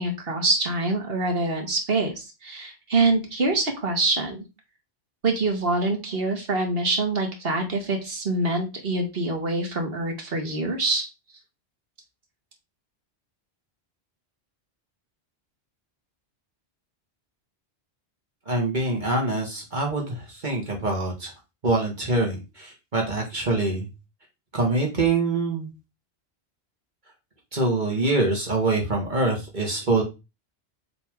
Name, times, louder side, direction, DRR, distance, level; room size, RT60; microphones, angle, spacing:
voice 1, 0.0-4.4 5.2-11.1, right 2 dB, 60° right, 4 dB, 1.7 m, -25 dB
voice 2, 18.5-21.3 21.6-23.9 24.5-25.7 27.5-30.0, right 2 dB, 45° right, 0 dB, 1.7 m, -25 dB
7.7 x 3.5 x 3.6 m, 0.26 s
omnidirectional pair, 1.1 m